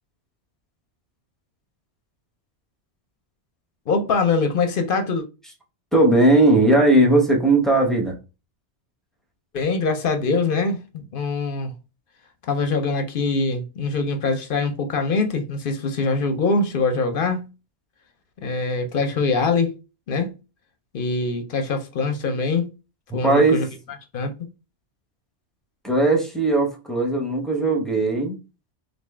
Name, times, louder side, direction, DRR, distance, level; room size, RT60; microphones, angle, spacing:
voice 1, 3.9-5.2 9.5-11.7 12.5-17.5 18.4-19.8 20.1-20.3 20.9-22.7 23.1-23.7 24.1-24.3, left 4 dB, 60° left, 0.7 m, -23 dB
voice 2, 5.9-8.2 23.2-23.6 25.8-28.3, right 2 dB, ahead, 0.6 m, -18 dB
3.5 x 2.6 x 3.1 m
omnidirectional pair, 1.2 m